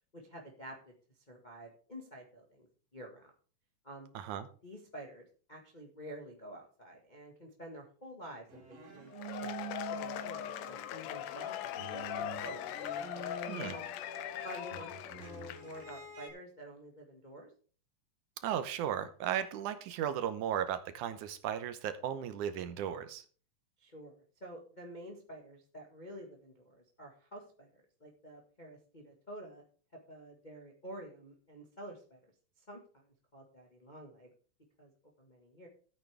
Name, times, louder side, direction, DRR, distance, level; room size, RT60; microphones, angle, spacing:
voice 1, 0.1-0.9 1.3-2.7 2.9-3.3 3.8-4.1 4.6-12.6 13.5-13.8 14.4-17.5 23.8-29.6 30.1-32.3 32.6-33.0 33.3-34.3 34.8-34.9 35.2-35.7, right 1 dB, 70° left, -1 dB, 0.4 m, -49 dB
voice 2, 4.2-4.5 13.5-13.8 18.4-23.2, right 10 dB, 75° right, 10 dB, 2.2 m, -35 dB
sound 1, 8.5-11.0 11.3-16.3, right 6 dB, 50° right, 3.5 m, -47 dB
Cheering / Applause / Crowd, 9.1-15.9, left 11 dB, 85° left, 1.5 m, -40 dB
13.0 x 8.6 x 3.4 m, 0.41 s
omnidirectional pair, 3.8 m